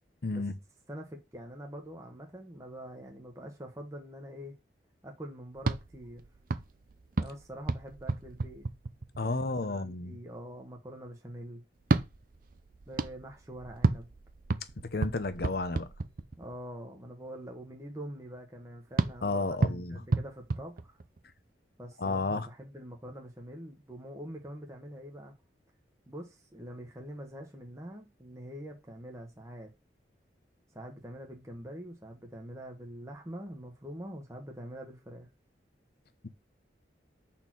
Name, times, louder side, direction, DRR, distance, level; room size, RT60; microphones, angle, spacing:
voice 1, 0.2-0.5 9.2-10.1 14.9-15.9 19.2-20.0 22.0-22.5 36.2-36.3, left 3 dB, 55° left, 0.7 m, -32 dB
voice 2, 0.9-4.5 5.0-6.2 7.2-8.7 9.2-11.6 12.9-14.1 16.4-21.0 21.8-25.3 26.1-29.7 30.7-35.3, equal, 15° right, 1.1 m, -45 dB
sound 1, 5.6-9.4 11.8-16.6 19.0-21.4, right 3 dB, 50° right, 0.5 m, -33 dB
5.5 x 4.3 x 6.1 m
head